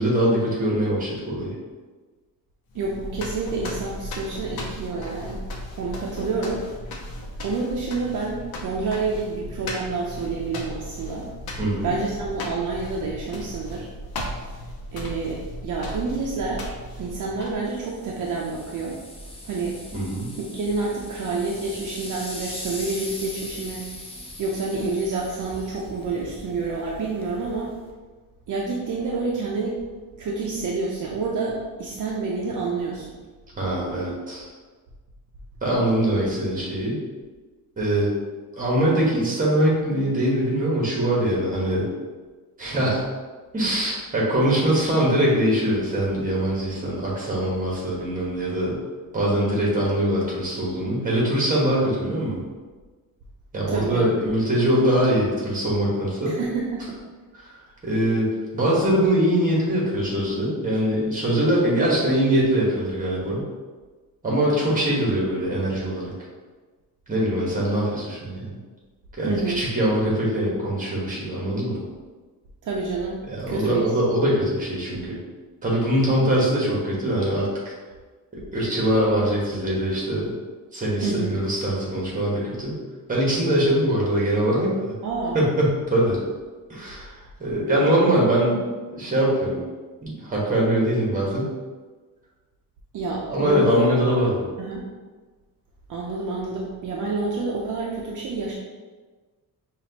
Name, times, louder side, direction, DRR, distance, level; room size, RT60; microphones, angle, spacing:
voice 1, 0.0-1.5 11.6-11.9 19.9-20.3 33.6-34.4 35.6-37.0 37.8-38.1 38.6-41.9 42.6-43.0 43.5-48.8 49.1-52.4 53.5-56.4 57.3-57.5 57.8-63.4 64.2-66.1 67.1-68.6 69.2-71.8 73.3-75.2 75.6-77.7 78.5-80.3 80.7-82.8 83.1-84.9 85.3-86.2 86.7-87.1 87.4-88.6 88.9-89.6 90.0-91.5 93.3-94.5, right 1 dB, 20° right, -5 dB, 1.3 m, -22 dB
sound 1, 2.7-17.8, left 1 dB, 75° left, 0.7 m, -36 dB
voice 2, 2.7-5.4 5.8-6.7 7.4-11.3 11.8-13.9 14.9-16.7 17.0-19.0 19.4-19.8 20.4-27.7 28.5-29.8 30.2-33.1 53.7-54.1 56.3-57.0 69.3-69.6 72.6-73.2 73.5-73.8 81.0-81.4 85.0-85.4 92.9-93.8 94.6-94.9 95.9-98.5, right 3 dB, 60° right, -3 dB, 0.6 m, -28 dB
sound 2, 17.6-27.9, left 1 dB, 15° left, 0.5 m, -40 dB
5.9 x 2.5 x 2.9 m, 1.3 s
wide cardioid pair, 160°, 36 cm